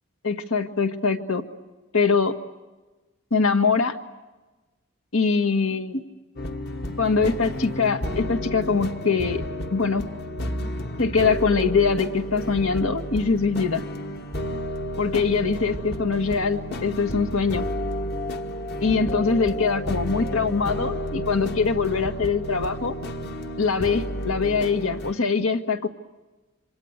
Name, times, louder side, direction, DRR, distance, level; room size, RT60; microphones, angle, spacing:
voice 1, 0.2-1.4 1.9-2.4 3.3-4.0 5.1-6.0 7.0-9.4 9.7-10.0 11.0-13.8 15.0-17.6 18.8-22.9 23.6-25.9, left 4 dB, 85° left, 6 dB, 1.8 m, -23 dB
sound 1, 6.4-25.1, equal, 50° left, 1.3 m, -31 dB
27.0 x 26.0 x 8.1 m, 1.2 s
head